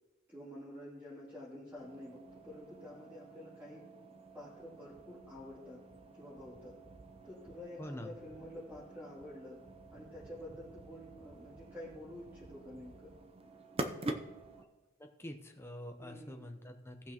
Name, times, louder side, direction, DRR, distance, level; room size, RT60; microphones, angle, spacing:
voice 1, 0.3-3.8 4.3-5.8 6.2-6.8 7.2-9.6 9.9-13.1 16.0-16.4, left 1 dB, 10° right, -9 dB, 2.7 m, -49 dB
sound 1, 1.8-14.6, right 2 dB, 30° right, 0.6 m, -47 dB
voice 2, 7.8-8.1 14.6-14.7 15.0-17.1, left 1 dB, 10° left, 5 dB, 0.7 m, -46 dB
18.0 x 6.1 x 3.0 m, 1.1 s
head